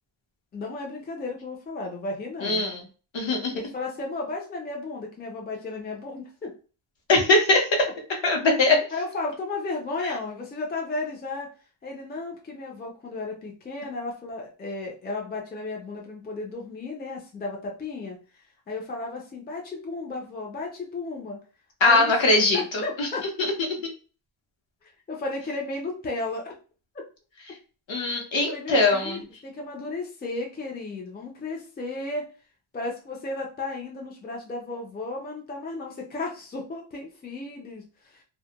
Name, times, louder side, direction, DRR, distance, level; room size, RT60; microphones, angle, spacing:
voice 1, 0.5-2.7 3.5-6.5 8.9-11.5 11.8-18.2 18.7-21.4 21.8-22.1 22.5-23.2 25.1-26.5 28.3-32.3 32.7-38.2, left 3 dB, 20° left, 0 dB, 0.4 m, -34 dB
voice 2, 2.4-2.8 3.1-3.5 7.1-7.7 8.2-8.8 21.8-22.6 23.0-23.1 27.9-29.2, left 2 dB, 65° left, 1 dB, 0.9 m, -21 dB
2.2 x 2.1 x 2.8 m, 0.36 s
wide cardioid pair, 155°, 50 cm